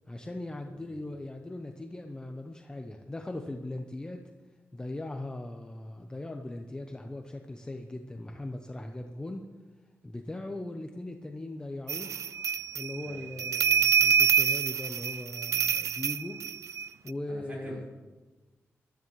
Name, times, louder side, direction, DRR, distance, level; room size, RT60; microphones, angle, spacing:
voice 1, 0.1-4.2 4.7-9.4 10.0-12.1 12.7-16.4 17.0-17.8, left 2 dB, 15° left, 4 dB, 0.7 m, -39 dB
sound 1, 11.9-17.1, right 7 dB, 80° right, 0.3 m, -26 dB
voice 2, 17.3-17.8, right 1 dB, 30° right, -4 dB, 4.9 m, -44 dB
19.5 x 12.5 x 3.2 m, 1.2 s
wide cardioid pair, 140°, 5 cm